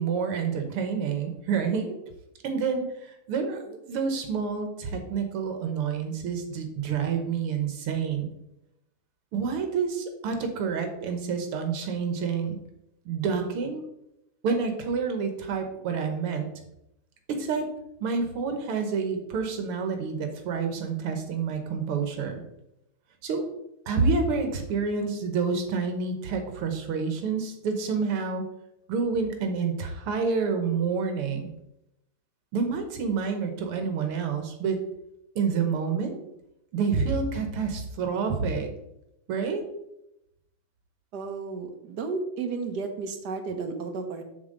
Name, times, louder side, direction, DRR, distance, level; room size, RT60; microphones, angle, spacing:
voice 1, 0.0-2.0 2.4-8.3 9.3-12.6 13.1-13.8 14.4-16.5 17.3-17.7 18.0-22.4 23.2-23.4 23.9-28.5 28.9-31.5 32.5-34.8 35.4-36.2 36.7-38.7 39.3-39.6, right 5 dB, 85° right, 5 dB, 2.1 m, -28 dB
voice 2, 41.1-44.2, right 4 dB, 55° right, 6 dB, 1.4 m, -33 dB
7.5 x 7.0 x 3.9 m, 0.83 s
omnidirectional pair, 2.4 m